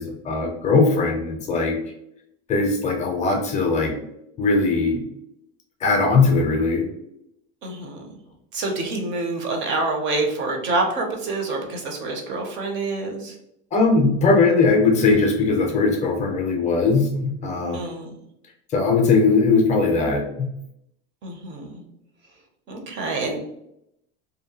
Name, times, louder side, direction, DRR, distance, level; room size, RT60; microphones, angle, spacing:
voice 1, 0.0-1.7 2.5-3.9 4.4-5.0 5.8-6.8 13.7-17.8 18.7-20.5, left 3 dB, 20° left, 1 dB, 0.4 m, -19 dB
voice 2, 7.6-8.0 8.5-13.3 17.7-18.1 21.2-21.8 22.7-23.4, right 2 dB, 35° right, 3 dB, 0.5 m, -27 dB
2.7 x 2.1 x 2.7 m, 0.79 s
cardioid pair, 155°, 35 cm